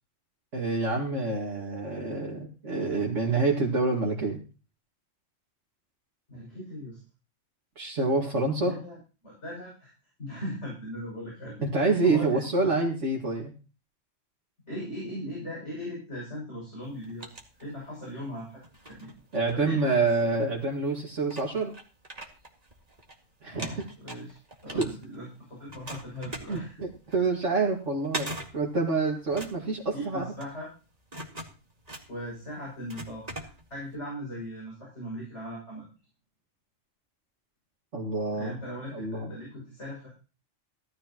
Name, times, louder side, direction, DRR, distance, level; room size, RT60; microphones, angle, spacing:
voice 1, 0.5-4.4 7.8-8.7 11.6-13.5 19.3-21.7 23.4-23.8 24.7-24.9 26.5-30.3 37.9-38.5 38.9-39.3, right 3 dB, 70° right, -2 dB, 2.5 m, -27 dB
voice 2, 6.3-7.0 8.6-9.0 9.2-9.9 10.2-12.7 14.7-17.3 17.6-19.1 19.5-20.4 23.4-26.8 29.9-30.7 32.1-35.9 38.3-40.1, equal, 65° left, -4 dB, 7.4 m, -39 dB
sound 1, 16.8-18.1 18.6-20.3 20.9-21.0 21.3-23.2 23.4-25.4 25.7-34.0, right 1 dB, 30° right, 2.3 m, -42 dB
17.0 x 13.0 x 3.0 m, 0.35 s
omnidirectional pair, 1.3 m